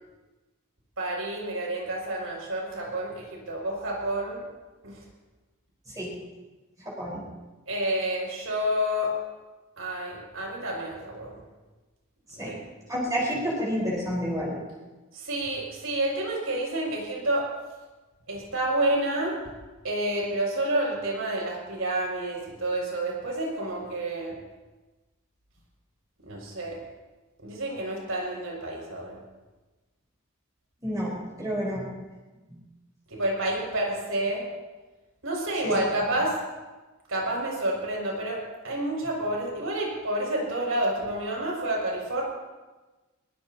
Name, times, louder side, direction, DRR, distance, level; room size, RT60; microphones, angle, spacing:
voice 1, 1.0-4.4 4.8-5.0 7.7-9.1 9.8-11.4 12.4-12.5 15.1-17.4 18.3-19.3 19.8-24.4 26.2-26.8 27.4-29.2 33.1-34.4 35.2-36.3 37.1-42.2, right 1 dB, 85° right, -2 dB, 6.8 m, -29 dB
voice 2, 6.8-7.2 12.4-12.5 12.9-14.6 30.8-31.8 32.5-32.6 35.6-35.8, equal, 15° right, -6 dB, 4.5 m, -29 dB
22.5 x 20.5 x 2.9 m, 1.2 s
head